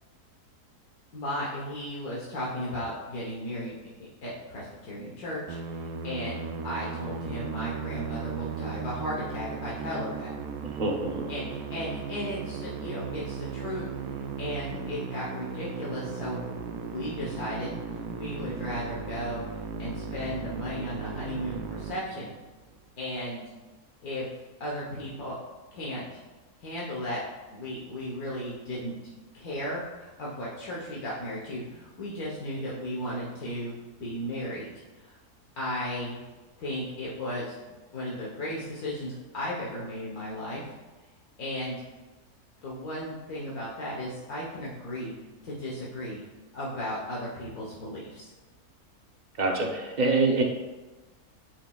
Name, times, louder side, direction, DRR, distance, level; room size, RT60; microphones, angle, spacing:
voice 1, 1.1-3.8 4.2-10.3 11.3-13.8 14.1-16.5 16.8-17.7 18.1-19.4 19.8-22.3 23.0-23.5 24.0-24.3 24.6-25.4 25.7-26.1 26.6-27.2 27.5-29.0 29.3-34.7 35.1-35.2 35.6-36.2 36.6-37.5 37.9-40.7 41.4-41.8 42.6-45.1 45.4-46.2 46.5-48.3, equal, 75° left, -5 dB, 1.6 m, -35 dB
Musical instrument, 5.5-22.6, right 6 dB, 75° right, 1.1 m, -36 dB
voice 2, 10.8-11.3 49.4-50.4, right 3 dB, 40° right, 1 dB, 0.6 m, -25 dB
8.9 x 5.2 x 2.3 m, 1.2 s
omnidirectional pair, 1.6 m